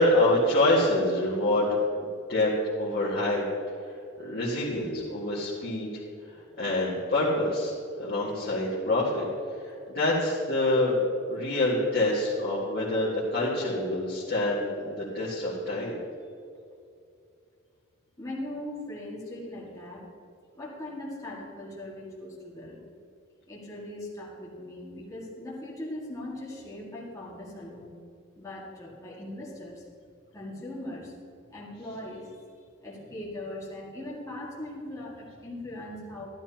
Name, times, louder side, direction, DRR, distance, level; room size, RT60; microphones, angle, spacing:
voice 1, 0.0-2.5 2.8-3.4 3.8-5.9 6.3-9.3 9.6-11.0 11.3-16.0, left 1 dB, 45° left, -7 dB, 1.9 m, -26 dB
voice 2, 18.2-20.1 20.6-22.8 23.5-27.9 28.4-29.8 30.3-31.2 31.5-32.4 32.8-36.3, left 1 dB, 15° left, -6 dB, 1.9 m, -40 dB
12.5 x 12.0 x 2.9 m, 2.4 s
head